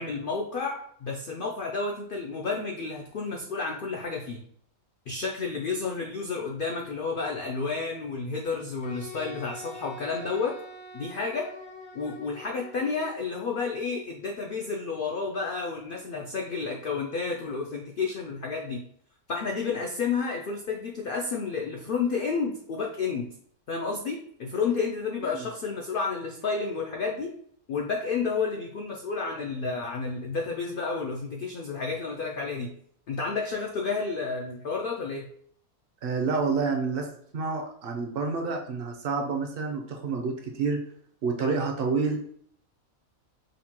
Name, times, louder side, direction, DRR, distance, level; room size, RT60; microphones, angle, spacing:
voice 1, 0.0-4.4 5.1-10.6 10.9-11.5 11.9-18.8 19.3-23.3 23.7-27.3 27.7-32.7 33.1-35.3, left 4 dB, 90° left, 0 dB, 0.4 m, -31 dB
Wind instrument woodwind instrument, 8.8-13.1, left 2 dB, 60° left, 0.7 m, -44 dB
voice 2, 36.0-37.1 37.3-40.8 41.2-42.2, right 4 dB, 60° right, 2 dB, 0.6 m, -28 dB
5.0 x 2.2 x 2.8 m, 0.63 s
omnidirectional pair, 1.5 m